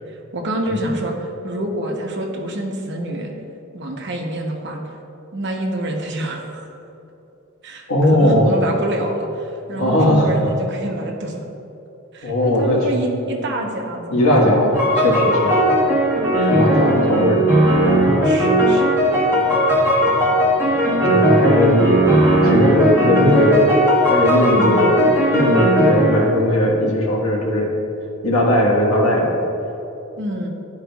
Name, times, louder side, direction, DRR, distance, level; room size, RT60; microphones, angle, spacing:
voice 1, 0.3-3.3 3.7-5.0 5.3-6.7 7.6-11.5 12.1-14.7 16.3-16.6 17.0-17.3 18.1-18.9 24.5-25.1 30.2-30.5, right 1 dB, 55° right, 1 dB, 0.9 m, -27 dB
voice 2, 7.9-8.5 9.7-10.3 12.2-12.8 14.1-15.6 16.5-17.4 21.0-21.8 22.4-23.7 24.1-24.8 25.3-27.7 28.2-29.3, left 1 dB, 85° left, -3 dB, 1.4 m, -18 dB
sound 1, 14.7-26.3, equal, 10° right, 1.0 m, -17 dB
12.0 x 4.8 x 2.3 m, 2.9 s
head